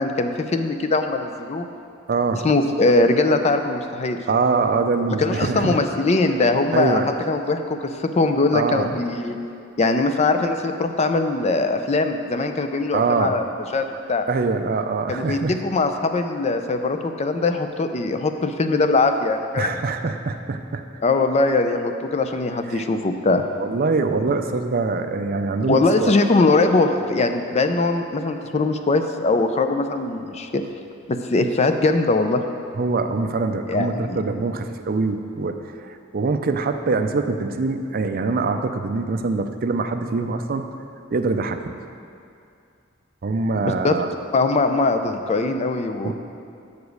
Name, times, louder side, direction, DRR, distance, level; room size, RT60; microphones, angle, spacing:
voice 1, 0.0-1.7 2.4-4.2 5.2-7.0 7.3-9.4 9.8-13.4 13.7-14.3 15.1-19.7 21.0-23.4 25.7-30.6 31.1-32.4 33.7-34.2 43.6-44.0 44.3-46.1, left 3 dB, 35° left, 7 dB, 0.5 m, -21 dB
voice 2, 2.1-2.5 4.3-5.8 6.7-7.1 8.5-9.0 12.9-13.4 14.3-15.6 19.6-20.9 22.7-22.8 23.6-26.1 32.8-35.6 35.8-40.7 41.1-41.7 43.2-44.1 46.0-46.1, right 4 dB, 45° right, 7 dB, 0.5 m, -23 dB
8.2 x 5.0 x 6.3 m, 2.5 s
head